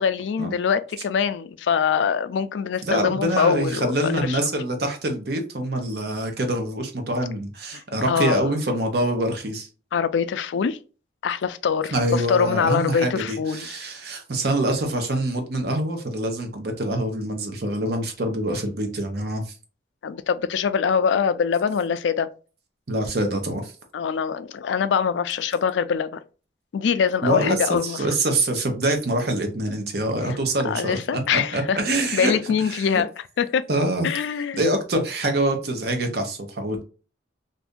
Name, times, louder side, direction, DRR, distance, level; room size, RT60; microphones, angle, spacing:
voice 1, 0.0-4.4 8.1-8.5 9.9-10.8 11.2-13.8 20.0-22.3 23.9-26.2 26.7-28.0 30.3-30.4 30.6-31.8 32.1-33.1 33.4-33.6 34.0-34.6, left 6 dB, 90° left, 0.3 m, -23 dB
voice 2, 2.8-9.7 11.9-19.5 22.9-23.7 27.2-32.3 32.7-32.9 33.7-34.1 34.6-36.8, right 1 dB, 60° right, 0.8 m, -25 dB
2.6 x 2.5 x 3.5 m
head